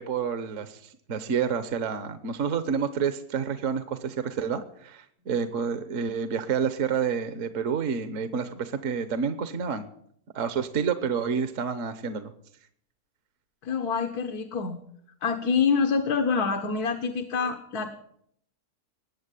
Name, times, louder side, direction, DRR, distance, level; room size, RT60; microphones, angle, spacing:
voice 1, 0.0-9.9 10.3-12.3, right 6 dB, 60° right, 11 dB, 1.3 m, -29 dB
voice 2, 13.6-14.8 15.2-17.9, left 5 dB, 85° left, 5 dB, 1.7 m, -26 dB
20.5 x 8.3 x 8.3 m, 0.68 s
omnidirectional pair, 1.6 m